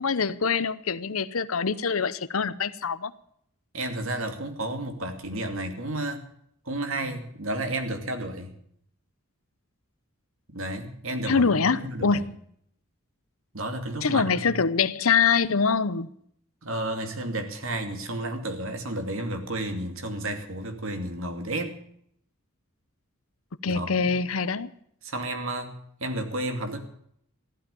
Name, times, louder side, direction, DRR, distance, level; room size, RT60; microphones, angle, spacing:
voice 1, 0.0-3.1 11.2-12.4 14.0-16.1 23.6-24.7, left 5 dB, 80° left, 16 dB, 0.8 m, -24 dB
voice 2, 3.7-6.3 6.6-8.5 10.5-12.2 13.5-14.4 16.6-21.8 23.7-24.1 25.0-26.8, right 1 dB, 70° right, 6 dB, 2.5 m, -32 dB
15.5 x 12.0 x 7.0 m, 0.68 s
head